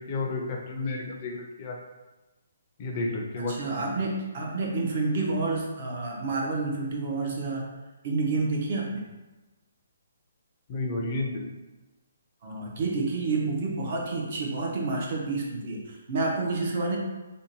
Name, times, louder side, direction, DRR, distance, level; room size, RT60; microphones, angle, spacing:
voice 1, 0.1-1.8 2.8-3.9 10.7-11.4, left 2 dB, 25° left, 0 dB, 0.4 m, -31 dB
voice 2, 3.4-7.7 8.0-9.0 12.4-17.0, right 3 dB, 40° right, -1 dB, 0.5 m, -29 dB
2.6 x 2.1 x 2.7 m, 1.1 s
hypercardioid pair, 170°, 0 cm